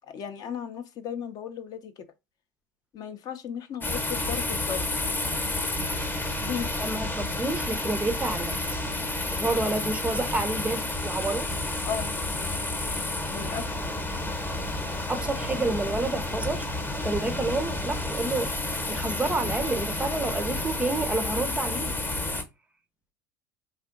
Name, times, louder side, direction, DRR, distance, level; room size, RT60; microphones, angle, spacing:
voice 1, 0.1-2.0 2.9-4.8 6.4-6.7 11.8-12.1 13.3-13.8, left 8 dB, 40° left, 0.5 m, -35 dB
sound 1, 3.8-22.4, left 2 dB, 20° left, 0.9 m, -30 dB
voice 2, 6.8-8.8 9.2-11.5 15.1-16.7 17.0-18.5 18.9-22.0, right 2 dB, 10° right, 0.5 m, -29 dB
4.1 x 3.0 x 2.5 m
figure-of-eight pair, 70°, 10 cm